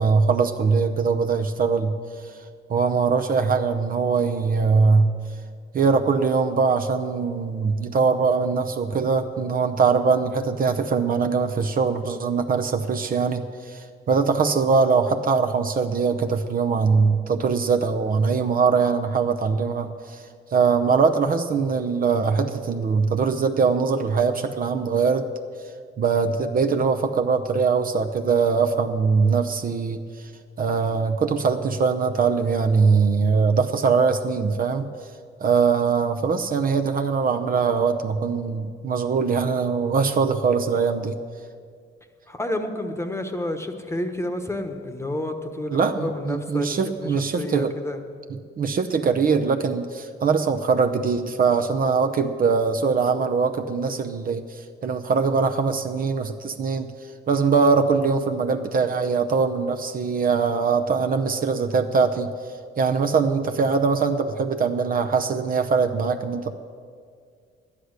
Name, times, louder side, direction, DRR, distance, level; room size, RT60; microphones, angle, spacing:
voice 1, 0.0-1.9 2.7-5.1 5.7-20.2 20.5-25.3 26.0-30.0 30.6-34.9 35.4-41.2 45.7-47.7 48.3-56.9 57.3-62.3 62.8-66.6, right 5 dB, 45° right, 7 dB, 0.7 m, -22 dB
voice 2, 42.3-48.0, left 1 dB, 15° left, 7 dB, 1.1 m, -30 dB
11.5 x 9.9 x 6.5 m, 2.1 s
cardioid pair, 90°, 20 cm